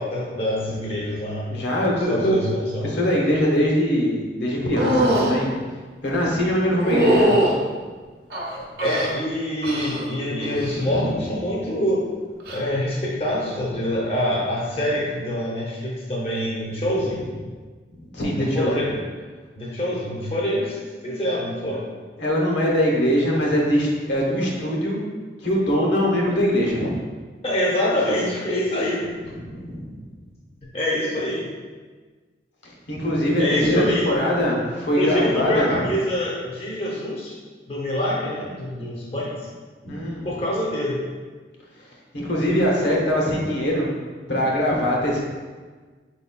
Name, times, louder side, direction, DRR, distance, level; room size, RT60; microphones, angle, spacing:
voice 1, 0.0-1.5 2.1-2.9 8.5-12.1 12.5-17.2 18.4-18.9 19.6-20.8 21.0-21.9 27.4-29.0 30.7-31.4 33.4-34.1 35.0-37.4 37.7-39.5 40.2-41.0, left 1 dB, 35° left, -4 dB, 0.6 m, -25 dB
voice 2, 1.5-2.5 2.8-5.6 6.0-7.4 10.9-11.1 18.1-18.7 22.2-25.0 25.4-26.9 29.5-29.9 32.9-35.8 39.8-40.3 42.1-43.9 44.3-45.2, equal, 75° left, -3 dB, 0.9 m, -22 dB
sound 1, 4.7-5.4 6.8-7.6 8.3-9.1 9.6-10.1 10.4-10.9 12.4-12.6, right 1 dB, 60° right, 0.7 m, -21 dB
4.5 x 4.0 x 2.2 m, 1.4 s
head